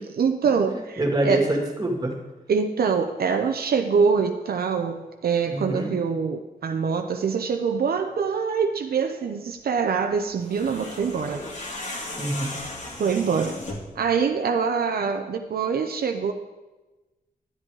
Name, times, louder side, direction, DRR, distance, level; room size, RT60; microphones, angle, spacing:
voice 1, 0.2-1.4 2.5-11.4 13.0-13.6 14.0-16.3, right 6 dB, 80° right, 5 dB, 0.7 m, -24 dB
voice 2, 0.7-2.2 5.5-5.9 12.2-12.6, right 2 dB, 25° right, 1 dB, 2.1 m, -25 dB
sound 1, 10.4-14.0, left 2 dB, 55° left, 2.0 m, -36 dB
10.5 x 10.0 x 4.7 m, 1.1 s
wide cardioid pair, 140°, 16 cm